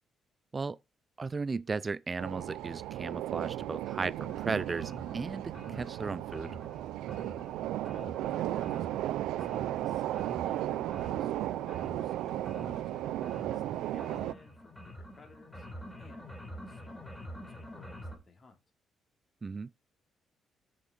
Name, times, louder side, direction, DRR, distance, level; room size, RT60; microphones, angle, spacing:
voice 1, 1.2-6.5 19.4-19.7, right 4 dB, 30° right, 0.4 m, -35 dB
sound 1, 2.2-14.3, right 14 dB, 90° right, 0.4 m, -35 dB
sound 2, 4.2-18.2, equal, 10° left, 3.9 m, -48 dB
voice 2, 7.9-15.7 16.0-18.6, left 3 dB, 40° left, 3.1 m, -56 dB
7.6 x 6.5 x 5.2 m
cardioid pair, 90°, 0 cm